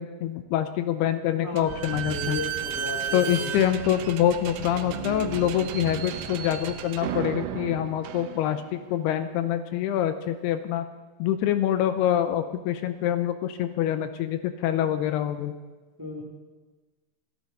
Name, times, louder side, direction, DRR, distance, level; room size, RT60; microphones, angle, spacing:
voice 1, 0.0-2.4 3.1-10.9 11.2-15.5, left 11 dB, 85° left, 10 dB, 2.6 m, -26 dB
voice 2, 1.4-3.5 16.0-16.2, left 2 dB, 5° right, 0 dB, 1.9 m, -35 dB
Slam / Squeak, 1.6-8.8, right 9 dB, 80° right, 2.6 m, -34 dB
29.0 x 11.0 x 4.1 m, 1.2 s
omnidirectional pair, 4.8 m